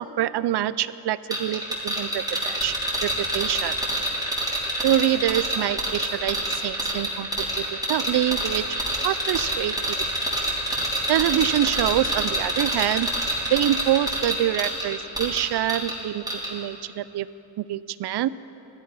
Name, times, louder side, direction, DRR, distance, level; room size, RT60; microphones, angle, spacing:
voice 1, 0.0-2.7 3.0-3.7 4.8-8.8 9.0-10.0 11.1-13.1 13.5-16.2 16.5-17.3 17.6-18.3, right 12 dB, 60° right, 17 dB, 0.5 m, -25 dB
sound 1, 1.3-16.0 16.3-16.5, right 1 dB, 10° right, 3.4 m, -27 dB
15.0 x 12.5 x 5.4 m, 3.0 s
cardioid pair, 90°, 45 cm